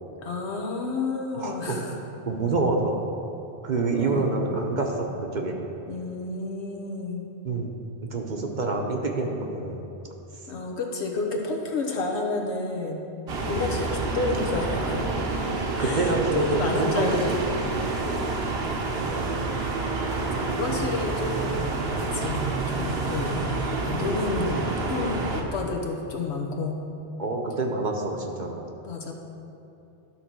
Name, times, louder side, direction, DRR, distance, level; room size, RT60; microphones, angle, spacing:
voice 1, 0.2-1.9 3.9-4.4 5.9-7.2 10.5-13.0 13.4-15.1 15.8-17.5 20.2-23.5 23.8-26.8 28.8-29.1, left 3 dB, 80° left, 0 dB, 1.3 m, -30 dB
voice 2, 1.3-1.8 2.3-3.0 3.6-5.6 7.4-7.7 8.0-9.8 15.8-17.4 18.1-18.4 19.0-19.5 21.4-21.5 27.2-28.7, right 3 dB, 45° right, 1 dB, 0.9 m, -27 dB
sound 1, 13.3-25.4, right 3 dB, 65° right, 1.1 m, -28 dB
12.0 x 4.0 x 6.1 m, 2.8 s
omnidirectional pair, 1.1 m